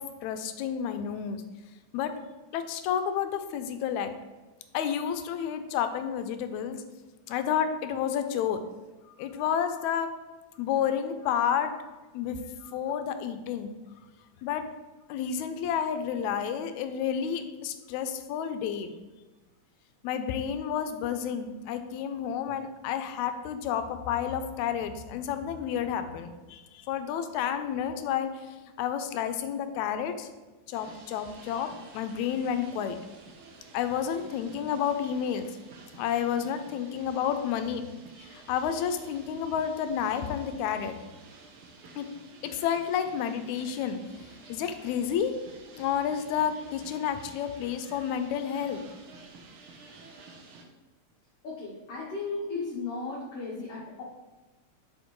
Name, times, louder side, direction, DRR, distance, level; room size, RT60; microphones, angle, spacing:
voice 1, 0.0-1.4 1.9-2.1 2.5-4.1 4.7-6.8 7.3-8.6 9.2-10.1 10.6-11.8 12.1-13.7 14.4-14.7 15.1-18.9 20.0-30.3 30.7-33.0 33.7-35.5 35.9-37.8 38.2-40.9 42.0-42.1 42.4-45.3 45.8-48.8, left 8 dB, 80° left, 9 dB, 1.9 m, -30 dB
sound 1, 30.7-50.6, right 3 dB, 80° right, 1.2 m, -51 dB
voice 2, 51.4-54.0, left 3 dB, 65° left, -5 dB, 1.7 m, -35 dB
6.4 x 5.1 x 3.0 m, 1.2 s
omnidirectional pair, 3.4 m